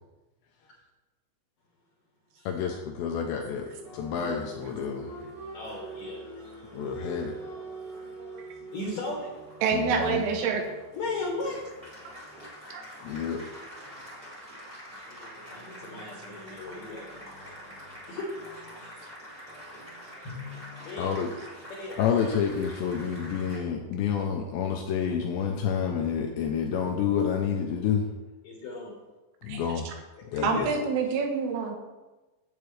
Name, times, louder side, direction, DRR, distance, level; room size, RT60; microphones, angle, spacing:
voice 1, 2.5-5.1 6.7-7.4 9.7-10.3 13.0-13.4 21.0-21.3 22.0-28.1 29.5-29.9 30.3-30.7, left 7 dB, 80° left, 1 dB, 2.6 m, -29 dB
Applause, 3.6-23.6, right 1 dB, 30° right, 0.6 m, -45 dB
voice 2, 5.5-6.4 8.7-9.3 10.9-11.6 15.1-17.4 18.1-19.0 20.8-21.1 21.8-22.3 28.4-29.0 30.3-30.7, left 2 dB, 65° left, -2 dB, 2.2 m, -37 dB
voice 3, 9.6-10.7 12.3-12.5 12.7-12.8 29.9-30.0 30.4-31.8, right 5 dB, 85° right, 3 dB, 3.6 m, -27 dB
Drum, 20.2-22.0, left 5 dB, 45° left, 1.5 m, -45 dB
10.5 x 8.0 x 3.3 m, 1.1 s
omnidirectional pair, 5.7 m